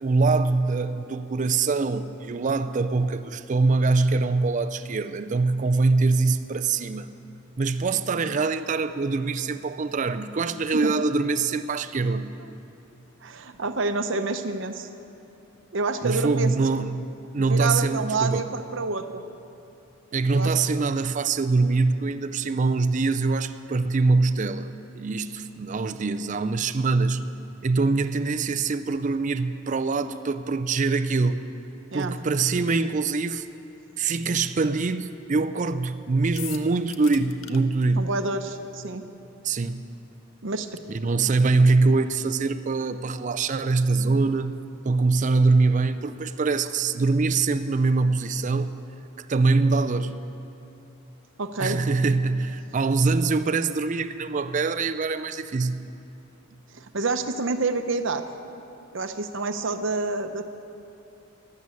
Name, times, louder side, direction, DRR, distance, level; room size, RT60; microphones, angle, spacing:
voice 1, 0.0-7.1 7.6-12.3 16.0-17.0 17.3-18.5 20.1-27.3 27.6-31.4 31.9-33.5 34.0-38.1 39.4-39.8 40.9-44.6 44.8-48.8 49.2-50.2 51.6-55.8, right 3 dB, 35° right, 10 dB, 0.4 m, -23 dB
voice 2, 13.2-14.9 15.7-16.5 17.4-19.2 20.3-20.5 31.9-32.2 38.0-39.0 40.4-40.8 51.4-51.8 56.7-58.2 58.9-60.4, right 3 dB, 60° right, 9 dB, 0.8 m, -28 dB
sound 1, 36.4-37.6, left 11 dB, 70° left, 0.8 m, -39 dB
12.5 x 12.0 x 8.3 m, 2.7 s
head